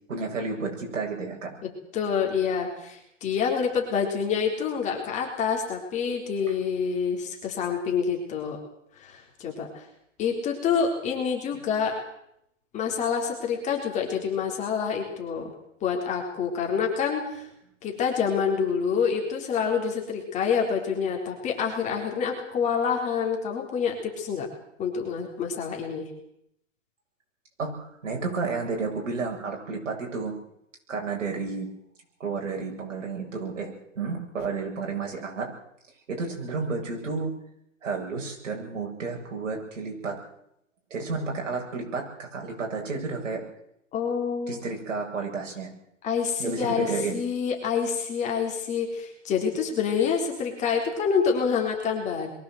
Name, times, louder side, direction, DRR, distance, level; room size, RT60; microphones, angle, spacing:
voice 1, 0.1-1.5 6.4-6.5 27.6-30.3 30.9-31.7 32.2-35.6 36.1-37.3 37.8-40.2 40.9-43.4 44.5-45.7 46.4-47.2, right 4 dB, 70° right, 1 dB, 7.9 m, -31 dB
voice 2, 1.9-8.6 9.0-9.8 10.2-12.0 12.7-15.5 15.8-17.5 17.8-24.5 24.8-26.1 43.9-44.7 46.0-52.3, left 6 dB, 20° left, 1 dB, 3.9 m, -27 dB
22.5 x 16.0 x 8.0 m, 0.76 s
hypercardioid pair, 150°, 38 cm